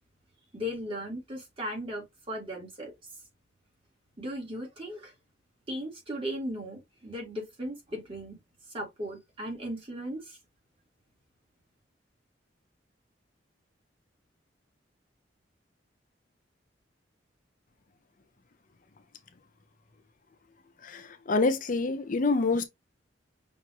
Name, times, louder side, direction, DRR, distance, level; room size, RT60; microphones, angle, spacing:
voice 1, 0.5-2.9 4.2-5.1 5.7-8.4 8.7-10.4, equal, 30° right, 2.4 m, -37 dB
voice 2, 20.8-22.6, left 3 dB, 45° left, 0.7 m, -26 dB
6.0 x 2.8 x 2.9 m
head